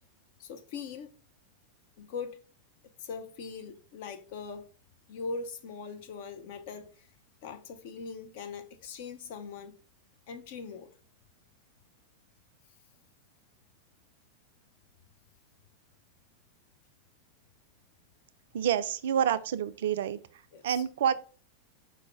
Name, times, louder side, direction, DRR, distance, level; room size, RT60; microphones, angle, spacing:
voice 1, 0.4-1.1 2.0-2.4 3.0-4.7 5.1-7.1 7.4-9.7 10.3-10.9 20.5-20.8, left 5 dB, 50° left, 0.5 m, -41 dB
voice 2, 18.5-20.2 20.6-21.1, right 9 dB, 60° right, 0.3 m, -28 dB
4.8 x 2.1 x 4.4 m
figure-of-eight pair, 90°, 0 cm